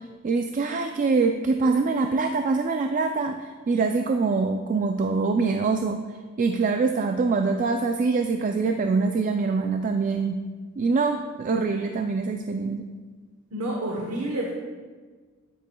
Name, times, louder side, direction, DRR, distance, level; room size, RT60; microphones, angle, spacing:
voice 1, 0.2-6.0 6.4-10.4 10.8-12.9, right 4 dB, 35° right, 5 dB, 0.3 m, -24 dB
voice 2, 13.5-14.5, right 1 dB, 80° right, -2 dB, 1.1 m, -29 dB
9.2 x 8.2 x 2.2 m, 1.4 s
head